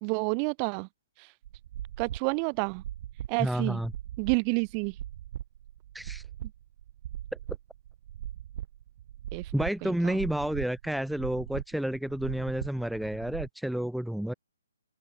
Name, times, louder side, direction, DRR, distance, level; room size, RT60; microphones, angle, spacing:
voice 1, 0.0-0.9 1.2-1.3 2.0-2.8 3.3-3.8 4.2-5.0 9.3-9.5 9.8-10.2, right 40 dB or more, 25° right, 3.2 m, -29 dB
sound 1, 1.4-13.5, right 12 dB, 45° right, 3.0 m, -40 dB
voice 2, 3.4-3.9 5.9-6.2 9.5-14.3, equal, ahead, 2.6 m, -30 dB
open air
hypercardioid pair, 145°, 0 cm